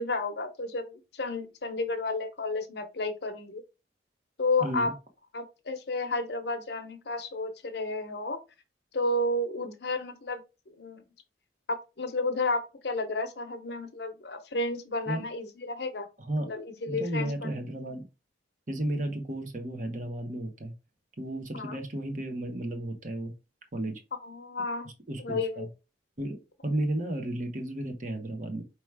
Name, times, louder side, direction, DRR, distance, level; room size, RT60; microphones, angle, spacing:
voice 1, 0.0-3.6 4.4-4.9 5.3-8.4 8.9-10.4 10.8-11.0 11.7-16.1 16.5-17.6 21.5-21.8 24.2-24.9 25.2-25.7, left 2 dB, 65° left, 0.8 m, -32 dB
voice 2, 4.6-4.9 15.1-15.2 16.2-16.5 16.9-18.0 18.7-20.7 21.2-23.3 23.7-24.0 24.8-25.7 26.2-28.6, right 1 dB, 45° right, 1.0 m, -33 dB
4.7 x 3.0 x 3.3 m
head